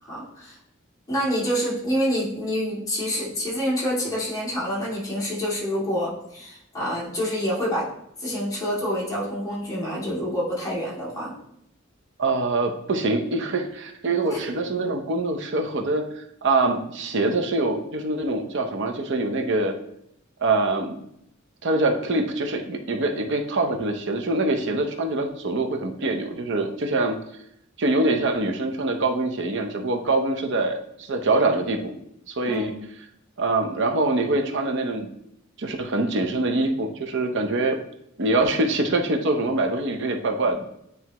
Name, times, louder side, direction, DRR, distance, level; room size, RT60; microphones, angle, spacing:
voice 1, 0.0-0.6 1.1-7.9 8.2-11.4 14.2-14.4 32.4-32.7, equal, 20° left, -6 dB, 2.3 m, -27 dB
voice 2, 12.2-19.7 20.4-20.9 21.6-27.2 27.8-31.9 32.3-32.7 33.4-35.1 35.6-37.8 38.2-40.6, right 2 dB, 65° right, 4 dB, 0.8 m, -24 dB
9.2 x 3.5 x 3.0 m, 0.75 s
head